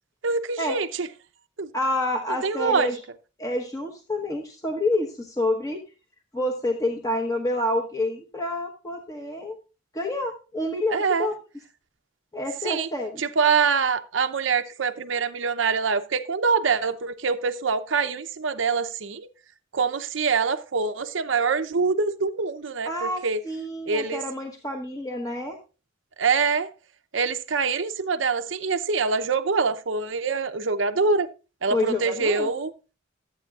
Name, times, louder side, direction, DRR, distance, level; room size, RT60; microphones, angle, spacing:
voice 1, 0.2-1.1 1.6-1.7 2.4-2.9 10.9-11.3 12.6-12.9 13.2-19.3 19.7-23.4 23.9-24.2 26.2-26.7 27.1-31.3 31.6-32.7, right 5 dB, 80° right, 0.8 m, -24 dB
voice 2, 1.7-3.0 3.4-5.8 6.3-9.6 9.9-11.4 12.3-13.2 22.8-25.6 31.7-32.5, left 1 dB, 20° left, 1.1 m, -28 dB
14.0 x 8.5 x 2.4 m
head